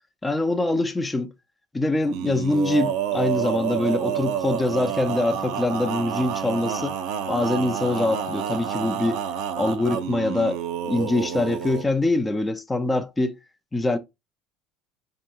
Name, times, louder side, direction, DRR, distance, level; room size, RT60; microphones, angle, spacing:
voice 1, 0.2-1.3 1.7-7.0 7.3-9.2 9.6-10.6 10.9-13.4 13.7-14.0, left 2 dB, 10° left, 0.3 m, -24 dB
Male singing, 2.1-11.9, right 8 dB, 65° right, 0.4 m, -29 dB
4.4 x 2.8 x 2.3 m
cardioid pair, 155°, 0 cm